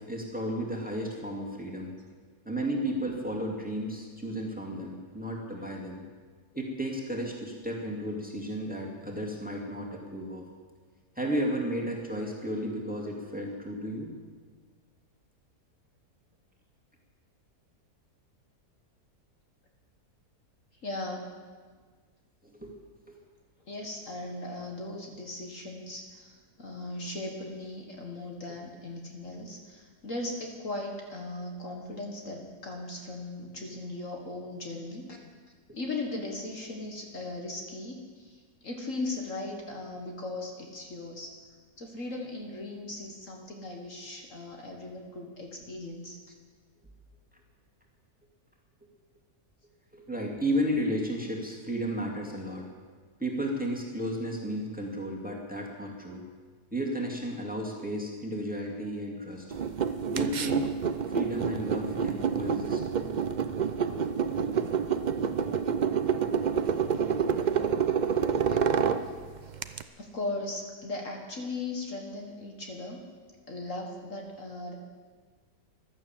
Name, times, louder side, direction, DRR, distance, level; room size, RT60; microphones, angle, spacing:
voice 1, 0.0-1.9 2.4-6.0 6.5-10.5 11.2-14.1 22.4-22.7 49.9-52.7 53.2-56.2 56.7-59.5 60.1-60.7 61.1-62.8 66.6-66.8 67.1-67.8 68.2-68.3, equal, 5° right, -1 dB, 2.4 m, -33 dB
voice 2, 20.8-21.3 23.7-35.2 35.7-41.4 41.8-46.2 66.9-67.1 68.4-68.8 69.0-69.1 69.4-69.6 70.0-73.0 73.5-74.8, left 2 dB, 55° left, 1 dB, 1.9 m, -38 dB
sound 1, 59.5-69.8, right 7 dB, 80° right, 0.4 m, -28 dB
15.5 x 12.0 x 7.4 m, 1.5 s
omnidirectional pair, 1.7 m